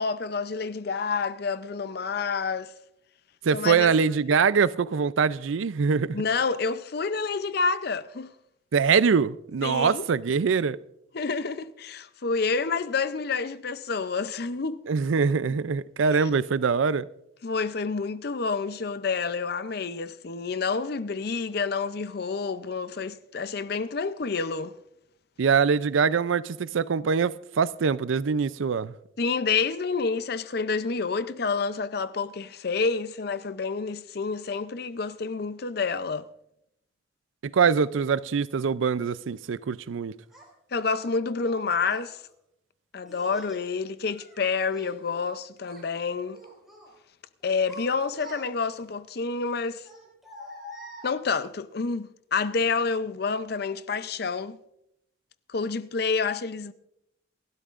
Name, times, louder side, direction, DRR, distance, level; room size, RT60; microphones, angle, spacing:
voice 1, 0.0-2.7 3.5-3.9 6.1-8.3 9.6-10.0 11.1-14.8 16.2-16.3 17.4-24.7 29.2-36.3 40.7-42.2 42.9-46.4 47.4-49.9 51.0-54.6 55.5-56.7, left 4 dB, 55° left, 0.6 m, -28 dB
voice 2, 3.4-6.2 8.7-10.8 14.9-17.1 25.4-28.9 37.4-40.1, right 5 dB, 85° right, 0.4 m, -23 dB
Child speech kid speaking, 40.3-40.5 41.4-42.1 43.1-43.7 44.1-45.3 45.6-45.9 46.3-46.9 47.4-48.8 49.8-51.5, equal, ahead, 4.7 m, -46 dB
28.5 x 12.5 x 2.5 m
head